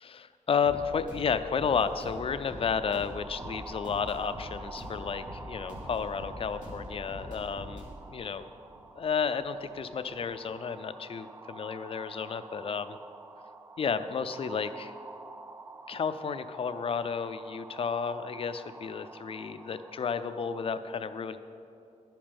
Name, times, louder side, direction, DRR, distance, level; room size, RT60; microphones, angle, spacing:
voice 1, 0.0-7.8 8.1-8.5 9.0-13.0 13.8-14.9 15.9-21.4, left 6 dB, 45° left, 11 dB, 0.4 m, -32 dB
sound 1, 0.6-10.3, equal, 75° right, 3.2 m, -45 dB
sound 2, 1.8-20.8, right 3 dB, 20° right, 0.3 m, -48 dB
12.0 x 8.8 x 5.2 m, 2.6 s
wide cardioid pair, 165°, 13 cm